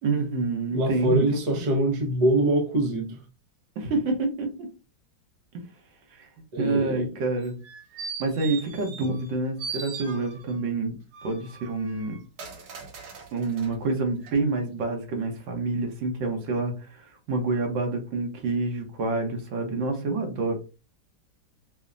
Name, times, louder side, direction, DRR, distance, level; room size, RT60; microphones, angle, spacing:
voice 1, 0.0-1.6 3.8-4.5 6.1-6.3 6.6-7.5 8.2-11.0 11.2-12.2 13.3-20.6, right 3 dB, 80° right, 1.7 m, -27 dB
voice 2, 0.7-3.2 6.5-7.1, right 1 dB, 35° right, 0.7 m, -24 dB
sound 1, 7.4-9.3 9.6-10.6 11.1-13.7 14.2-14.3, right 5 dB, 60° right, 1.3 m, -39 dB
5.5 x 2.1 x 2.5 m
omnidirectional pair, 2.1 m